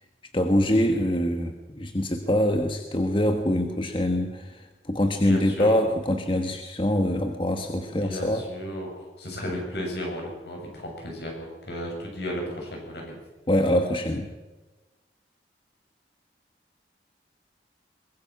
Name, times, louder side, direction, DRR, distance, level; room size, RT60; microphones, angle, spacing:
voice 1, 0.3-8.4 13.5-14.3, left 1 dB, 30° left, 5 dB, 1.3 m, -24 dB
voice 2, 5.2-5.8 7.9-13.1, equal, 70° left, 0 dB, 7.6 m, -34 dB
23.5 x 20.5 x 6.0 m, 1.2 s
head